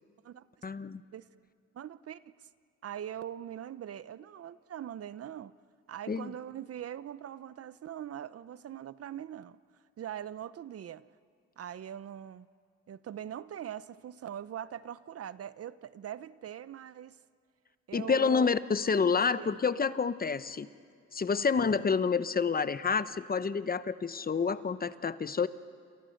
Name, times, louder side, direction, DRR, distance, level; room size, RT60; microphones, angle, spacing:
voice 1, 0.6-1.0 6.1-6.3 17.9-20.7 21.1-25.5, left 5 dB, 30° left, 14 dB, 0.9 m, -28 dB
voice 2, 1.7-2.2 2.8-5.5 5.9-9.6 10.0-11.0 11.6-12.5 12.9-17.2 17.9-18.4 19.0-19.6, right 10 dB, 50° right, 16 dB, 0.8 m, -42 dB
29.0 x 28.5 x 6.6 m, 2.2 s
cardioid pair, 90°, 30 cm